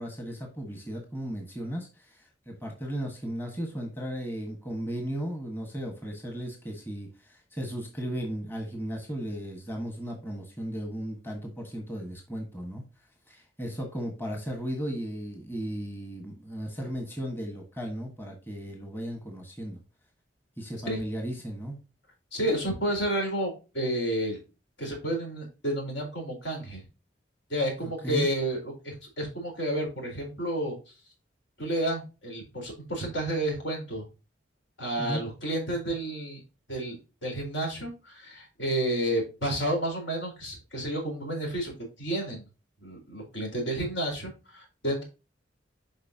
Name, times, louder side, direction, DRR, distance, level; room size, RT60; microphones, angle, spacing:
voice 1, 0.0-12.8 13.3-19.8 20.6-21.8 27.8-28.3 35.0-35.2, equal, 10° left, 2 dB, 1.5 m, -35 dB
voice 2, 22.3-24.4 24.8-26.8 27.5-28.6 28.8-30.8 31.6-34.0 34.8-36.4 36.7-42.4 42.8-45.0, right 1 dB, 70° left, 1 dB, 4.2 m, -31 dB
8.2 x 5.3 x 2.8 m, 0.29 s
head